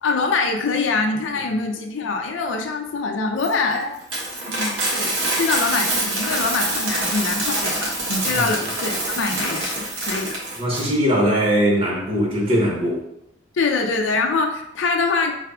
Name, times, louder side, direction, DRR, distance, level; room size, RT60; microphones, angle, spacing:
voice 1, 0.0-4.0 4.5-10.4 13.5-15.3, left 4 dB, 90° left, 3 dB, 0.5 m, -24 dB
Coin (dropping), 3.4-10.8, right 2 dB, 85° right, 1.4 m, -25 dB
voice 2, 10.6-13.0, equal, 30° right, -3 dB, 1.1 m, -20 dB
4.8 x 4.0 x 2.3 m, 0.82 s
head